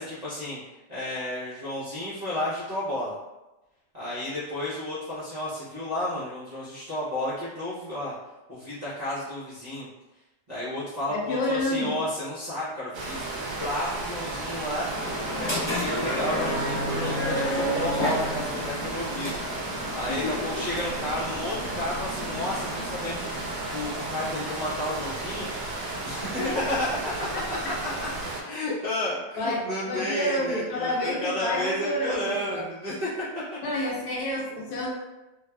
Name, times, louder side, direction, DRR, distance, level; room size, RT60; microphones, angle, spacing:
voice 1, 0.0-3.1 3.9-8.1 8.5-9.9 10.5-14.9 15.3-19.4 19.9-25.5 26.0-26.4 26.7-26.9 27.5-28.1 28.4-33.1 33.7-33.9, left 1 dB, 50° right, -13 dB, 0.5 m, -32 dB
voice 2, 11.1-12.0 20.1-20.6 26.4-26.6 27.3-27.7 29.4-32.6 33.6-34.9, left 1 dB, 70° left, -3 dB, 1.1 m, -29 dB
sound 1, 12.9-28.4, right 2 dB, 75° right, 1.1 m, -33 dB
sound 2, 14.9-24.4, equal, 10° left, 0.7 m, -32 dB
3.3 x 2.3 x 2.2 m, 1.0 s
omnidirectional pair, 1.8 m